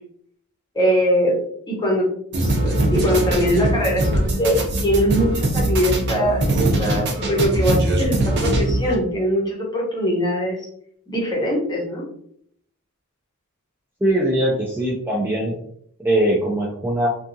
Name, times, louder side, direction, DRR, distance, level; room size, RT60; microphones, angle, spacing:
voice 1, 0.7-1.4 1.7-2.1 2.4-10.6 11.1-12.0, equal, 20° left, -2 dB, 0.7 m, -22 dB
sound 1, 2.3-8.9, right 1 dB, 50° right, 0.6 m, -21 dB
voice 2, 14.0-15.5 16.0-17.1, right 1 dB, 10° right, -4 dB, 0.4 m, -21 dB
2.6 x 2.3 x 2.6 m, 0.66 s
head